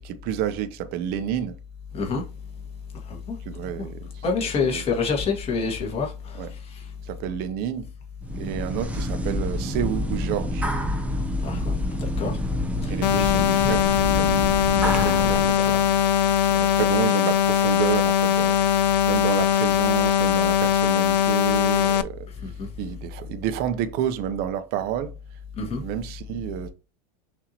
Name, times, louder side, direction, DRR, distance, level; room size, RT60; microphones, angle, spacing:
voice 1, 0.0-1.6 3.4-5.0 6.4-6.5 7.0-7.9 8.3-10.7 12.9-14.4 15.2-15.9 16.5-25.1 25.7-26.7, right 10 dB, 50° right, 0.7 m, -30 dB
voice 2, 4.2-6.1 11.4-11.7 12.0-12.3 13.1-13.5 15.0-15.8 16.5-16.7 25.6-25.8, left 5 dB, 30° left, 1.7 m, -27 dB
sound 1, 8.2-15.5, left 1 dB, 5° right, 0.8 m, -27 dB
sound 2, 13.0-22.0, left 9 dB, 85° left, 0.5 m, -21 dB
6.0 x 2.8 x 2.9 m
hypercardioid pair, 105°, 21 cm